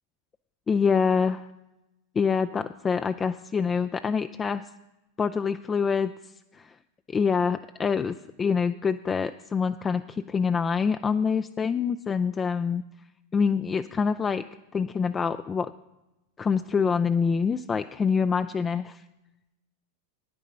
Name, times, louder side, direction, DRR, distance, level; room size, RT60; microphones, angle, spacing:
voice 1, 0.7-1.5 2.2-4.6 5.2-6.1 6.5-6.7 7.1-12.8 13.3-14.5 14.7-15.7 16.4-19.0, left 6 dB, 20° left, 9 dB, 0.3 m, -26 dB
10.0 x 8.9 x 5.3 m, 0.97 s
figure-of-eight pair, 90°, 0 cm